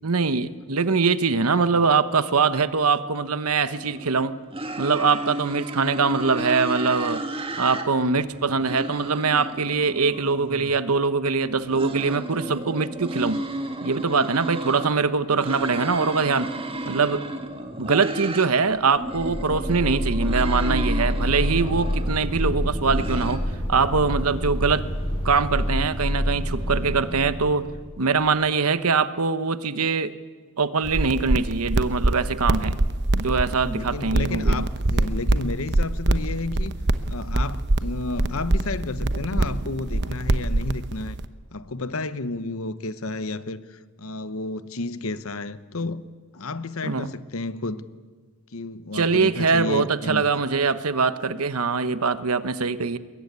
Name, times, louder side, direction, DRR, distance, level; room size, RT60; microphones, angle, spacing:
voice 1, 0.0-4.4 4.8-7.2 7.6-13.4 13.8-16.5 16.8-17.2 17.8-23.4 23.7-24.9 25.2-27.7 28.0-30.1 30.6-32.8 33.1-34.7 46.8-47.1 48.9-53.0, right 4 dB, 80° right, 1.0 m, -23 dB
sound 1, 3.8-4.2 4.5-7.8 8.2-10.7 11.5-14.9 15.3-18.5 18.8-22.1 22.6-23.4, right 1 dB, 25° right, 2.0 m, -33 dB
sound 2, 18.9-28.2, equal, 25° left, 6.0 m, -27 dB
sound 3, 30.8-41.2, right 2 dB, 50° right, 0.9 m, -24 dB
voice 2, 33.6-36.7 37.1-41.2 41.5-46.0 46.3-47.9 48.5-50.3, left 2 dB, 70° left, 1.0 m, -31 dB
23.0 x 21.5 x 9.6 m
head